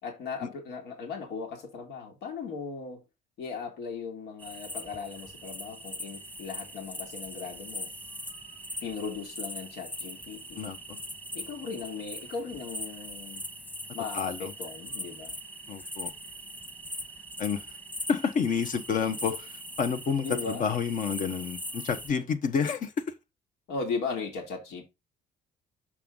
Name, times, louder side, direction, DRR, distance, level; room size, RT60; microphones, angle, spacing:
voice 1, 0.0-3.0 3.4-7.9 8.8-10.6 11.3-13.4 13.9-15.3 20.2-20.6 23.7-24.8, left 5 dB, 85° left, 2.3 m, -37 dB
sound 1, 4.4-22.1, equal, 10° left, 1.3 m, -41 dB
voice 2, 10.6-11.0 14.1-14.5 15.7-16.1 17.4-17.6 18.1-19.5 19.8-22.9, left 6 dB, 50° left, 1.1 m, -29 dB
6.2 x 5.6 x 3.8 m
cardioid pair, 110°, 17 cm